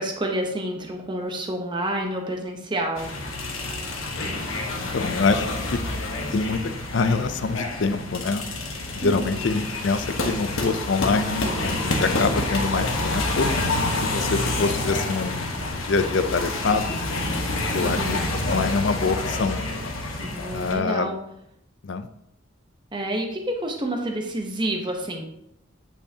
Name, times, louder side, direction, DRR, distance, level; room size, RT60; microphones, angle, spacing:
voice 1, 0.0-3.1 9.0-9.4 17.8-18.3 20.1-21.1 22.9-25.3, right 1 dB, 25° right, 2 dB, 0.8 m, -29 dB
sound 1, 3.0-20.7, left 2 dB, 90° left, 1.3 m, -28 dB
voice 2, 4.9-5.8 6.3-8.4 9.0-13.5 14.0-17.0 17.7-19.6 20.5-21.1 21.8-22.1, left 4 dB, 60° left, 10 dB, 0.5 m, -25 dB
8.7 x 5.4 x 2.8 m, 0.79 s
head